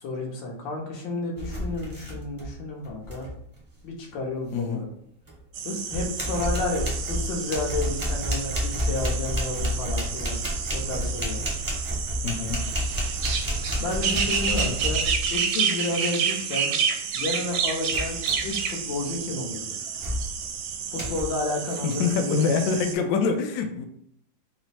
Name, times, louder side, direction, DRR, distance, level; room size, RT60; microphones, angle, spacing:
voice 1, 0.0-3.3 3.8-4.9 5.6-10.4 10.7-11.4 13.8-15.0 15.3-16.7 17.1-18.2 18.4-19.7 20.9-22.5, left 2 dB, 90° left, 0 dB, 1.6 m, -31 dB
sound 1, 1.4-2.6 2.8-3.3 5.3-5.4 5.9-15.4 17.9-18.6 19.1-19.4 20.0-20.5 21.0-21.2, equal, 35° right, 0.3 m, -30 dB
voice 2, 4.5-4.9 12.2-12.6 14.5-14.7 21.8-23.9, left 5 dB, 75° left, 5 dB, 0.9 m, -25 dB
sound 2, 5.5-22.9, right 7 dB, 70° right, 0.9 m, -30 dB
4.1 x 2.1 x 4.1 m, 0.70 s
omnidirectional pair, 2.0 m